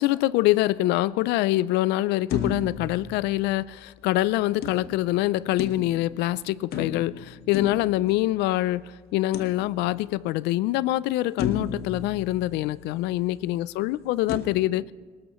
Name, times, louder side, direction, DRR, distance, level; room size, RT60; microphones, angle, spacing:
voice 1, 0.0-14.9, left 16 dB, 90° left, 0.4 m, -25 dB
sound 1, 2.3-3.9 4.6-6.2 6.7-8.6 9.3-10.2 10.7-10.8 11.4-13.1 14.3-14.4, left 7 dB, 70° left, 1.3 m, -34 dB
22.0 x 19.5 x 3.1 m
cardioid pair, 110°, 17 cm